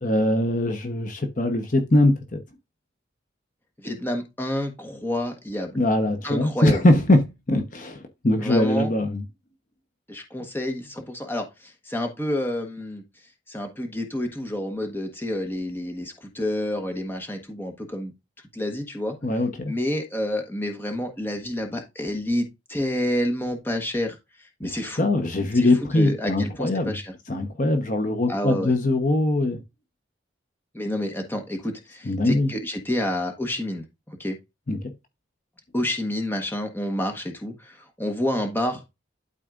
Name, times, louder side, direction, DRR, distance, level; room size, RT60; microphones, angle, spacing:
voice 1, 0.0-2.4 5.8-7.2 7.5-9.2 19.2-19.7 24.6-24.7 25.0-26.9 27.3-29.6 32.1-32.5 34.7-34.8, left 1 dB, 40° left, 0.9 m, -22 dB
voice 2, 3.8-5.8 6.2-7.0 8.4-8.9 10.1-13.0 13.5-18.1 18.5-19.1 19.7-25.1 25.5-27.1 28.3-28.7 30.7-34.4 35.7-38.8, left 1 dB, 10° left, 1.2 m, -29 dB
12.0 x 4.2 x 2.5 m
head